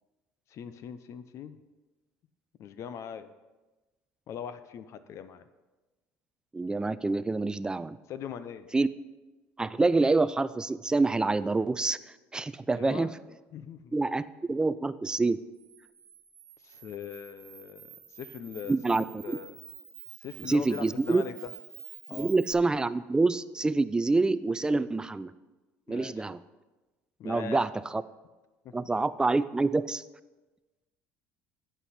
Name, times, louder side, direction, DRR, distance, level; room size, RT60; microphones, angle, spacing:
voice 1, 0.5-1.6 2.6-3.3 4.3-5.4 8.1-8.7 12.7-13.1 13.5-13.9 16.6-18.7 19.1-19.6 20.2-21.5 22.1-22.3 25.9-26.1 27.2-27.6 28.6-28.8, left 8 dB, 55° left, 12 dB, 0.6 m, -41 dB
voice 2, 6.5-8.0 8.7-8.9 9.6-13.1 13.9-15.4 18.7-19.4 20.4-21.2 22.1-25.3 25.9-26.4 27.2-28.0 28.7-30.0, right 3 dB, 15° right, 16 dB, 0.4 m, -27 dB
Camera, 15.5-22.5, right 10 dB, 55° right, 1.4 m, -48 dB
11.0 x 8.1 x 4.2 m, 1.2 s
supercardioid pair, 100°, 6 cm